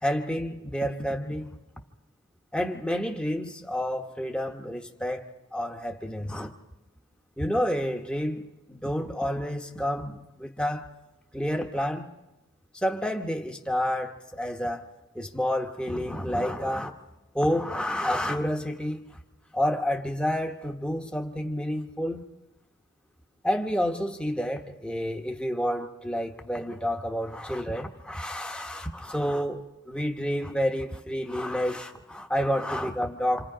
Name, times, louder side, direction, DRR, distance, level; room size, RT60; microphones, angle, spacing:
voice 1, 0.0-1.6 2.5-6.5 7.4-10.9 11.3-12.1 12.7-16.9 17.3-19.1 19.5-22.2 23.4-33.5, equal, 5° left, 1.1 m, -29 dB
27.5 x 27.0 x 5.1 m
head